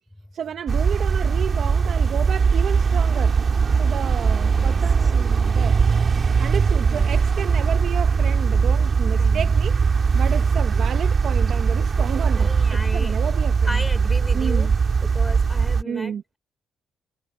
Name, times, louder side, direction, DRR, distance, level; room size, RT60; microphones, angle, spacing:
voice 1, 0.3-3.4 3.8-5.8 6.4-9.8 10.1-13.8 14.3-14.7 15.8-16.2, right 8 dB, 60° right, 1.2 m, -31 dB
sound 1, 0.7-15.8, right 5 dB, 40° right, 2.4 m, -20 dB
voice 2, 4.5-5.1 6.8-7.1 9.2-9.5 12.3-13.2 13.6-14.7 15.0-16.4, left 1 dB, 5° left, 4.8 m, -35 dB
cardioid pair, 90°, 0 cm